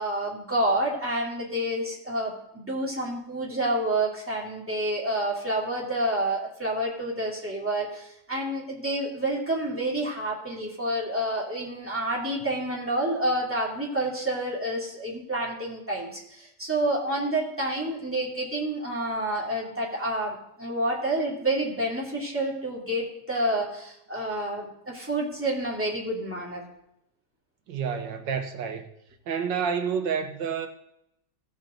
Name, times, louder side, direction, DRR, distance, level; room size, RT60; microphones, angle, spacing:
voice 1, 0.0-26.6, right 1 dB, 5° right, 2.6 m, -29 dB
voice 2, 27.7-28.9 29.3-30.7, right 6 dB, 85° right, 1.8 m, -29 dB
16.0 x 7.1 x 3.9 m
omnidirectional pair, 1.9 m